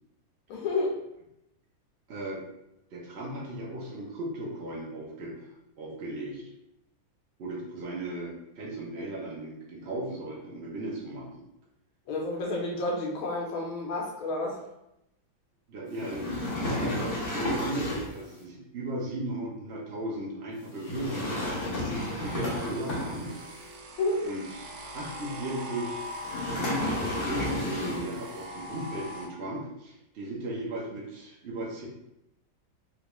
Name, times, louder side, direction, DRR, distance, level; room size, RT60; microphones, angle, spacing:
voice 1, 0.5-1.0 12.1-14.6 24.0-24.3, left 2 dB, 90° left, -2 dB, 1.5 m, -30 dB
voice 2, 2.1-2.4 2.9-5.5 5.8-6.4 7.4-11.4 15.7-23.3 24.2-26.1 27.3-31.9, right 1 dB, 60° right, -3 dB, 0.6 m, -36 dB
sound 1, 16.0-18.2 20.8-23.5 26.2-28.2, left 1 dB, 50° left, 0.6 m, -32 dB
sound 2, 22.0-29.3, equal, 85° right, 1.4 m, -41 dB
3.9 x 2.3 x 3.0 m, 0.85 s
omnidirectional pair, 2.2 m